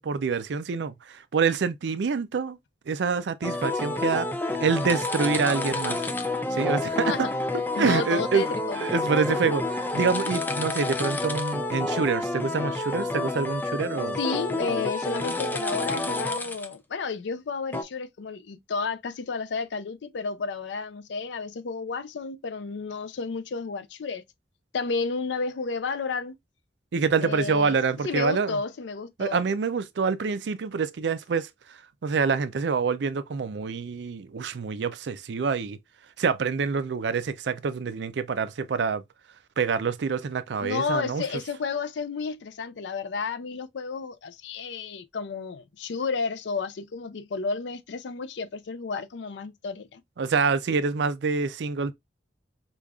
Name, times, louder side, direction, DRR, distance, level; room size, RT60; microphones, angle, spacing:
voice 1, 0.0-2.6 2.9-4.3 4.6-6.0 6.5-7.3 7.8-9.6 9.9-14.2 26.9-28.6 29.2-31.5 32.0-35.8 36.2-39.0 39.6-41.2 50.2-51.9, right 5 dB, 80° right, 0.4 m, -26 dB
sound 1, 3.4-16.7 17.7-17.8, left 2 dB, 10° left, 0.3 m, -29 dB
voice 2, 7.1-8.8 9.4-9.5 14.2-24.2 24.7-26.4 27.2-27.8 28.0-29.4 40.6-50.0, left 4 dB, 90° left, 0.4 m, -32 dB
5.0 x 2.4 x 2.3 m
head